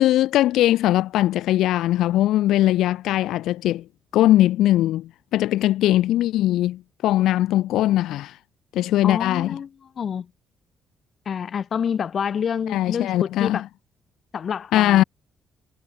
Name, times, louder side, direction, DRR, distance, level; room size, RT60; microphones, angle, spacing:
voice 1, 0.0-3.8 4.1-8.4 8.7-9.6 12.7-13.6 14.7-15.0, left 14 dB, 85° left, 0.4 m, -20 dB
voice 2, 9.0-9.7 10.0-10.3 11.3-13.6 14.3-15.0, left 7 dB, 50° left, 0.8 m, -27 dB
cardioid pair, 90°, 0 cm